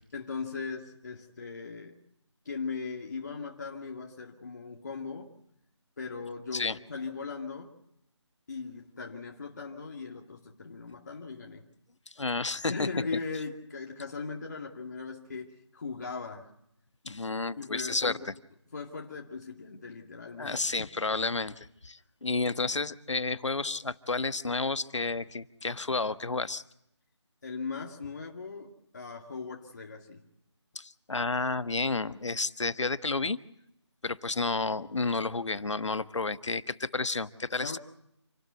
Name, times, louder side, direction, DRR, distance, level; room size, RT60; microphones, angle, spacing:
voice 1, 0.1-2.0 2.4-5.4 6.0-7.8 8.5-11.7 12.7-16.5 17.6-18.3 18.7-20.6 27.4-30.2 37.6-37.8, left 4 dB, 40° left, 1 dB, 2.4 m, -39 dB
voice 2, 12.2-13.0 17.0-18.3 20.4-26.6 30.7-33.4 34.0-37.8, left 3 dB, 80° left, 13 dB, 1.4 m, -31 dB
28.5 x 12.5 x 9.4 m, 0.78 s
figure-of-eight pair, 175°, 15 cm